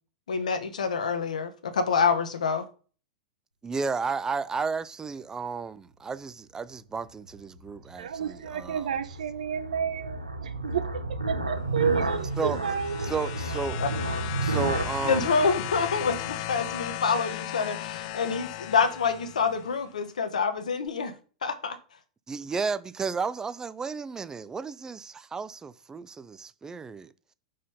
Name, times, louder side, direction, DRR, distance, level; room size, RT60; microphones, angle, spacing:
voice 1, 0.3-2.6 13.8-13.9 15.1-21.1 21.4-21.8, left 5 dB, 70° left, 0.8 m, -27 dB
voice 2, 3.6-8.9 12.4-12.6 13.0-13.8 14.4-15.3 22.3-27.1, right 5 dB, 15° right, 0.4 m, -33 dB
sound 1, 7.3-16.8, right 2 dB, 90° right, 1.0 m, -32 dB
voice 3, 8.0-13.3, right 7 dB, 70° right, 0.5 m, -31 dB
sound 2, 12.0-19.8 20.9-21.0, left 14 dB, 50° left, 0.4 m, -36 dB
5.0 x 4.0 x 5.7 m
figure-of-eight pair, 95°, 4 cm